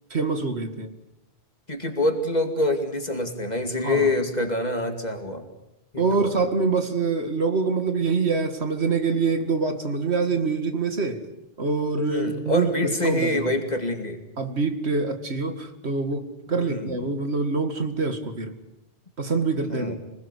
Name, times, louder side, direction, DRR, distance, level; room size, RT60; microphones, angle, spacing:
voice 1, 0.1-0.9 3.8-4.1 6.0-11.2 11.6-13.5 14.4-18.5 19.2-20.0, right 4 dB, 85° right, 7 dB, 2.4 m, -25 dB
voice 2, 1.7-5.5 5.9-6.4 12.1-14.2 16.6-17.0 19.7-20.0, left 1 dB, 40° left, 5 dB, 2.6 m, -26 dB
26.5 x 19.5 x 8.3 m, 0.90 s
omnidirectional pair, 1.1 m